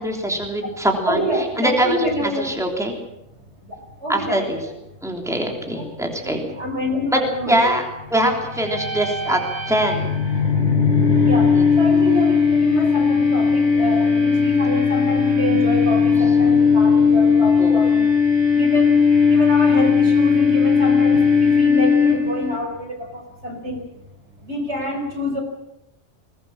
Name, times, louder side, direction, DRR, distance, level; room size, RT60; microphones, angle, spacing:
voice 1, 0.0-1.2 1.6-2.0 2.4-3.0 4.1-4.6 5.0-6.4 7.1-7.2 7.5-10.2 11.6-11.7 17.6-17.8, right 1 dB, ahead, 2 dB, 3.3 m, -22 dB
voice 2, 1.1-2.5 4.0-4.8 5.7-7.7 8.2-8.3 11.2-11.5 11.8-18.1 18.5-18.9 19.3-23.8 24.4-25.4, equal, 65° right, 3 dB, 5.4 m, -27 dB
sound 1, 8.5-22.6, left 5 dB, 90° right, 5.4 m, -17 dB
21.0 x 20.0 x 7.3 m, 0.86 s
omnidirectional pair, 1.2 m